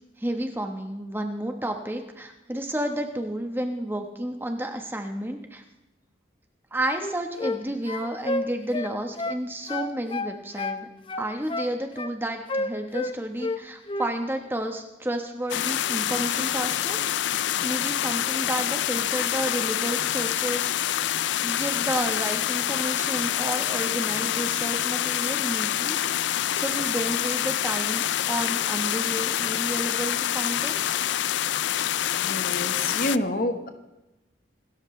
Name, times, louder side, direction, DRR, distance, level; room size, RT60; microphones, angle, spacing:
voice 1, 0.2-5.6 6.7-10.9 11.2-17.0 17.3-20.7 21.0-21.2 21.4-26.0 26.5-30.8, right 1 dB, 10° right, 4 dB, 1.2 m, -31 dB
sound 1, 6.9-7.6 7.9-9.4 9.7-10.8 11.1-12.1 12.5-13.6 13.9-14.1, left 2 dB, 30° left, 0.7 m, -30 dB
sound 2, 15.5-33.2, left 11 dB, 85° left, 0.4 m, -26 dB
voice 2, 32.2-33.7, left 1 dB, 50° left, 7 dB, 1.4 m, -28 dB
26.5 x 13.0 x 3.3 m, 0.98 s
head